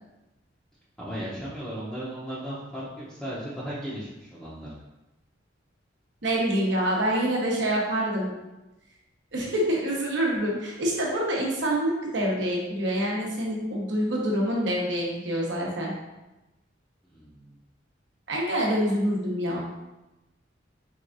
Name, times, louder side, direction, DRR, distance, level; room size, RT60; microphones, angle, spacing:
voice 1, 1.0-4.7 17.1-17.6, equal, ahead, -10 dB, 0.7 m, -36 dB
voice 2, 6.2-8.3 9.3-15.9 18.3-19.6, right 1 dB, 65° right, -3 dB, 1.0 m, -26 dB
4.7 x 3.4 x 2.6 m, 1.0 s
head